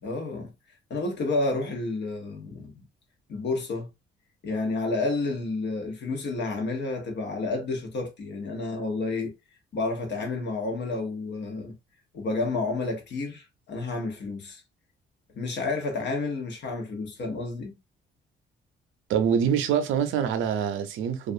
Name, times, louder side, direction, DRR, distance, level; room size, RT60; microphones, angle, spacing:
voice 1, 0.0-0.5 0.9-2.7 3.3-3.9 4.4-9.3 9.7-11.7 12.1-14.6 15.4-17.8, left 3 dB, 60° left, 1.0 m, -30 dB
voice 2, 19.1-21.3, right 8 dB, 85° right, 0.5 m, -25 dB
2.4 x 2.4 x 2.6 m
cardioid pair, 90°, 20 cm